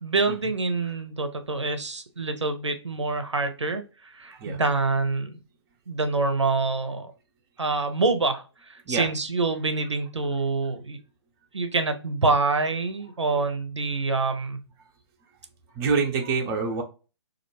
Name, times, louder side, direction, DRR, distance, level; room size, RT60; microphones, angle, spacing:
voice 1, 0.0-5.4 5.9-7.1 7.6-11.0 11.5-14.6, right 3 dB, 85° right, 0.5 m, -26 dB
voice 2, 15.7-16.8, right 4 dB, 20° right, 0.5 m, -26 dB
2.3 x 2.1 x 2.9 m
figure-of-eight pair, 130°, 15 cm